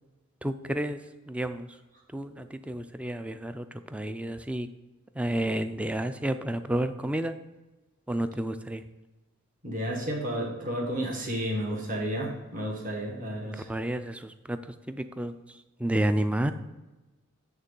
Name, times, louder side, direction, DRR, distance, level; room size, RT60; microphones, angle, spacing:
voice 1, 0.4-1.0 1.3-1.7 2.1-4.7 5.2-7.3 8.1-8.8 13.7-14.6 14.9-15.3 15.8-16.5, right 1 dB, 5° right, 10 dB, 0.3 m, -30 dB
voice 2, 9.6-13.7, equal, 40° right, -2 dB, 1.5 m, -32 dB
9.0 x 3.7 x 5.4 m, 1.1 s
head